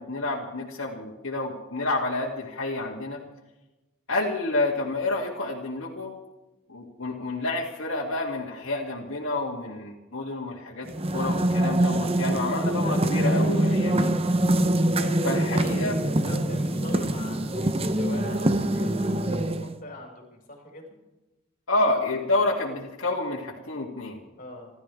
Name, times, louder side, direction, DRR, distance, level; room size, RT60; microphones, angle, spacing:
voice 1, 0.0-3.2 4.1-6.1 6.7-14.1 15.2-15.9 21.7-24.2, left 2 dB, 85° left, -5 dB, 2.6 m, -29 dB
sound 1, 10.9-19.8, right 1 dB, 30° right, 0.8 m, -24 dB
voice 2, 15.0-20.9 24.4-24.7, left 1 dB, 40° left, -1 dB, 5.4 m, -41 dB
28.5 x 13.5 x 3.5 m, 1.0 s
head